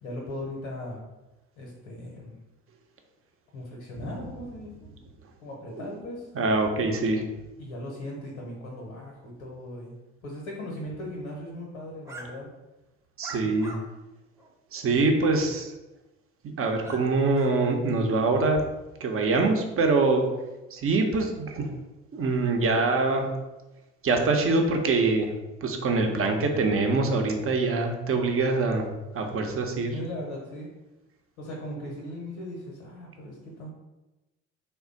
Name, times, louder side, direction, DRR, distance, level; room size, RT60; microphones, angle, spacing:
voice 1, 0.0-1.0 1.6-2.4 3.5-4.9 5.4-6.3 7.6-10.0 10.2-12.5 13.3-13.5 29.8-30.7 31.4-33.7, left 1 dB, 80° left, -2 dB, 0.9 m, -38 dB
voice 2, 6.3-7.2 13.2-13.8 14.7-15.7 16.4-18.6 19.0-20.2 20.7-21.7 22.1-23.3 24.0-25.3 25.6-28.9 29.1-29.9, right 3 dB, 40° right, 3 dB, 0.7 m, -24 dB
sound 1, 12.0-12.3 13.2-13.8 14.4-14.5 16.8-17.0 17.3-17.5, right 3 dB, 10° right, 0.8 m, -41 dB
3.3 x 2.2 x 3.8 m, 1.0 s
hypercardioid pair, 55°, 34 cm